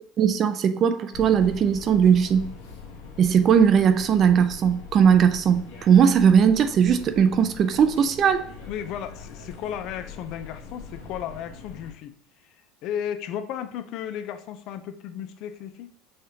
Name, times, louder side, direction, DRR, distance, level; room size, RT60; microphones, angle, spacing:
voice 1, 0.2-2.5 3.2-8.4, right 7 dB, 35° right, 0.4 m, -19 dB
sound 1, 1.1-11.9, left 5 dB, 85° left, 1.2 m, -42 dB
voice 2, 8.7-12.1 12.8-15.9, left 9 dB, 55° left, 0.5 m, -34 dB
5.6 x 3.3 x 2.8 m
supercardioid pair, 130°, 0 cm